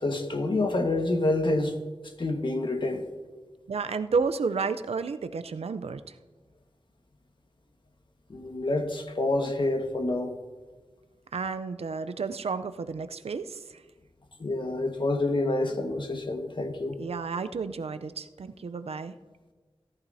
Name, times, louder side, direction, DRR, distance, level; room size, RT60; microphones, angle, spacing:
voice 1, 0.0-1.8 2.2-3.0 8.3-10.3 14.4-17.0, left 2 dB, 50° left, 1.4 m, -27 dB
voice 2, 3.7-6.0 11.3-13.6 17.0-19.1, right 5 dB, 80° right, 0.5 m, -31 dB
17.0 x 11.5 x 2.7 m
cardioid pair, 45°, 10 cm